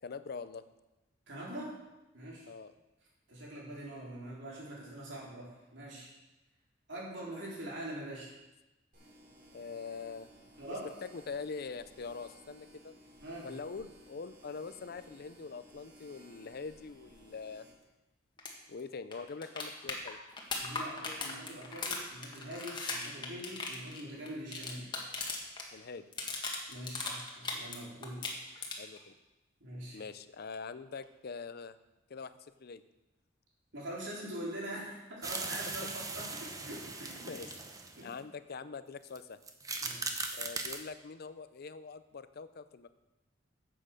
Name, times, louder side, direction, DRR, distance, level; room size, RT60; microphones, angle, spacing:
voice 1, 0.0-0.6 2.5-2.7 9.5-10.3 10.6-10.7 11.0-12.9 13.4-17.7 18.7-20.2 25.7-26.0 28.8-29.1 29.9-31.7 32.1-32.8 37.3-37.5 38.0-39.4 40.3-42.9, left 5 dB, 55° left, 13 dB, 0.5 m, -43 dB
voice 2, 1.3-1.7 2.1-2.5 3.3-6.1 6.9-8.3 10.6-10.9 13.2-13.5 20.6-24.9 26.7-28.6 29.6-30.0 33.7-37.3 38.0-38.1 39.8-40.1, right 1 dB, 70° right, -4 dB, 4.2 m, -43 dB
sound 1, 8.9-17.7, right 1 dB, 45° right, 3.9 m, -58 dB
sound 2, 18.4-18.5 18.8-18.9 19.1-25.7 25.9-27.8 28.0-29.0 31.0-31.1, left 3 dB, 25° left, 1.7 m, -38 dB
sound 3, 35.2-38.1 39.1-39.2 39.4-40.8, right 3 dB, 20° right, 0.9 m, -39 dB
9.9 x 7.7 x 6.7 m, 1.0 s
head